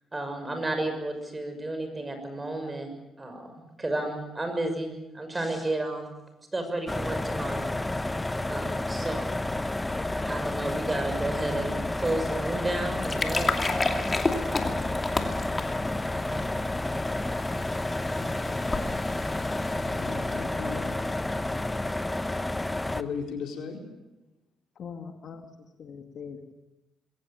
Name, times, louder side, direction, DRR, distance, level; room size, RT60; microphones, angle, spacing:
voice 1, 0.1-2.9 3.2-6.1 6.5-7.7 8.5-9.4 10.3-13.5 16.1-16.5, right 2 dB, 20° right, 6 dB, 6.2 m, -32 dB
sound 1, 6.9-23.0, left 2 dB, 15° left, 1.0 m, -30 dB
sound 2, 12.8-20.3, left 3 dB, 30° left, 2.7 m, -33 dB
voice 2, 18.2-18.7 19.7-21.1 22.9-23.8, left 6 dB, 80° left, 2 dB, 4.5 m, -37 dB
voice 3, 24.8-26.5, left 6 dB, 60° left, 4 dB, 2.1 m, -42 dB
21.5 x 18.0 x 8.8 m, 0.98 s
cardioid pair, 90°, 0 cm